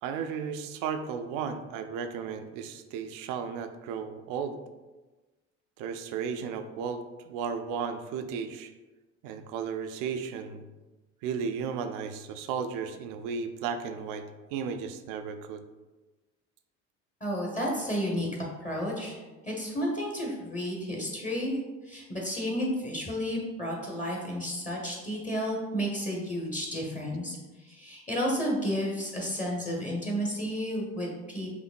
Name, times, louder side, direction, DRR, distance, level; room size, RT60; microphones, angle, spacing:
voice 1, 0.0-4.6 5.8-8.7 9.2-10.6 11.2-14.3 14.5-15.6, right 6 dB, 60° right, 7 dB, 0.5 m, -34 dB
voice 2, 17.2-18.3 18.6-21.6 21.8-27.4 27.6-31.6, equal, 20° left, -2 dB, 1.1 m, -32 dB
5.9 x 2.1 x 2.5 m, 1.2 s
hypercardioid pair, 65°, 37 cm